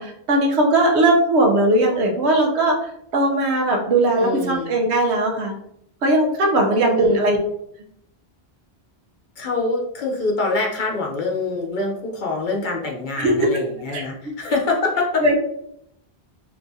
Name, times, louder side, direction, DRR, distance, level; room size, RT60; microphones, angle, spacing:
voice 1, 0.0-5.5 6.0-7.4 13.2-13.5 13.9-14.3 15.2-15.4, right 1 dB, 90° right, 1 dB, 1.0 m, -19 dB
voice 2, 4.2-4.7 6.7-7.2 9.4-15.2, left 3 dB, 55° left, 0 dB, 0.7 m, -25 dB
3.5 x 2.9 x 2.6 m, 0.73 s
omnidirectional pair, 1.1 m